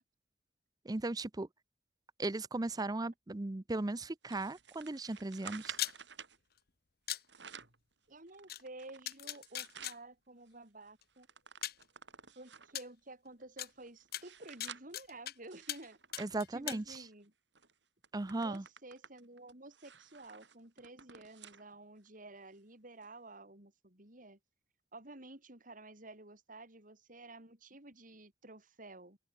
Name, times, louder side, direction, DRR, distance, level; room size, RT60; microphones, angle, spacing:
voice 1, 0.8-1.5 2.2-5.8 16.2-17.0 18.1-18.6, right 2 dB, 20° right, 0.6 m, -37 dB
sound 1, 4.3-6.4 7.1-7.8 8.3-10.0 10.5-10.6 10.8-12.8 13.4-17.1 17.6-17.7 18.0-21.6 22.1-22.2 23.0-23.1, right 7 dB, 70° right, 6.8 m, -52 dB
sound 2, 5.7-5.9 7.1-7.2 8.5-8.6 9.1-9.9 11.0-11.1 11.6-11.8 12.7-12.8 13.6-13.7 14.1-15.3 15.7-15.9 16.1-16.8, left 13 dB, 55° left, 1.1 m, -38 dB
voice 2, 8.1-11.3 12.3-16.0 16.5-17.3 18.3-24.4 24.9-29.2, right 2 dB, 45° right, 5.0 m, -52 dB
head